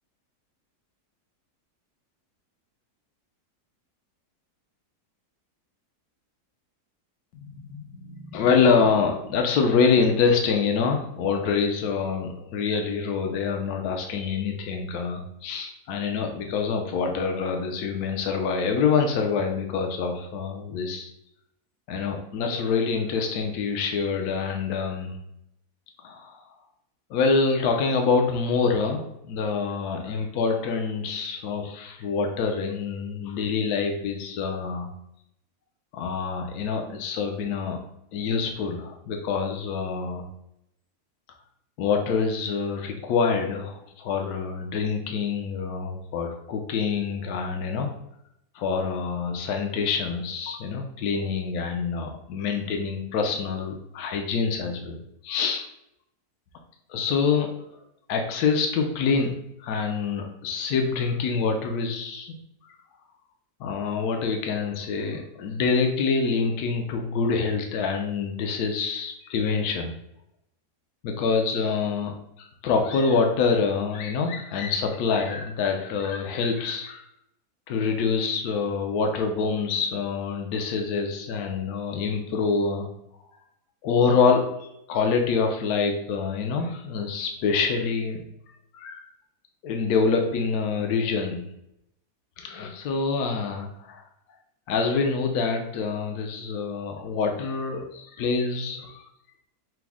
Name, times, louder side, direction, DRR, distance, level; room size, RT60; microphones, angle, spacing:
voice 1, 7.3-21.1 21.9-25.2 26.0-26.4 27.1-34.9 35.9-37.8 38.1-40.3 41.8-47.9 48.5-55.0 55.2-55.7 56.9-57.5 58.1-62.4 62.7-62.8 63.6-69.9 71.0-72.1 72.4-77.0 77.7-82.9 83.8-88.2 88.7-89.1 89.6-91.4 92.4-94.0 94.7-99.0, left 5 dB, 75° left, 3 dB, 1.1 m, -26 dB
5.8 x 2.0 x 3.5 m, 0.79 s
omnidirectional pair, 1.7 m